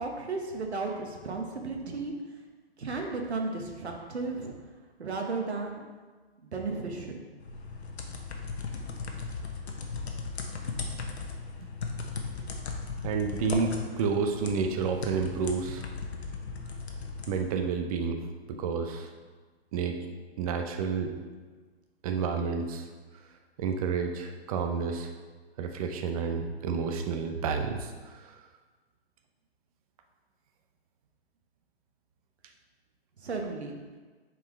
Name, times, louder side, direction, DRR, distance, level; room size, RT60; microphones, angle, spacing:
voice 1, 0.0-2.1 2.8-4.5 5.0-5.8 6.4-7.2 33.2-33.8, right 3 dB, 85° right, 2 dB, 1.2 m, -34 dB
sound 1, 7.4-17.4, left 4 dB, 80° left, 1.0 m, -37 dB
voice 2, 13.0-15.9 17.3-18.2 18.5-19.1 19.7-20.0 20.4-21.1 22.0-22.9 23.6-25.1 25.6-28.4, right 5 dB, 35° right, 5 dB, 0.6 m, -30 dB
7.2 x 4.6 x 3.2 m, 1.4 s
hypercardioid pair, 135°, 32 cm